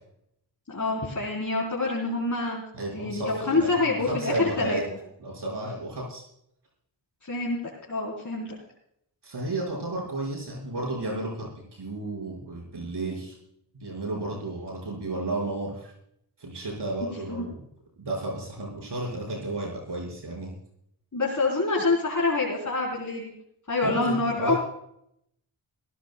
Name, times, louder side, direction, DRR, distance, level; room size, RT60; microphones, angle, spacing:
voice 1, 0.7-2.6 2.9-4.8 7.2-7.6 7.9-8.6 17.3-17.4 21.1-23.3 23.7-24.5, left 3 dB, 40° left, -5 dB, 3.9 m, -26 dB
voice 2, 2.7-4.8 5.2-6.2 9.2-13.3 13.7-15.9 16.4-17.6 18.0-20.5 23.8-24.6, right 2 dB, 65° right, -2 dB, 5.3 m, -32 dB
21.5 x 15.5 x 2.3 m, 0.73 s
cardioid pair, 55°, 44 cm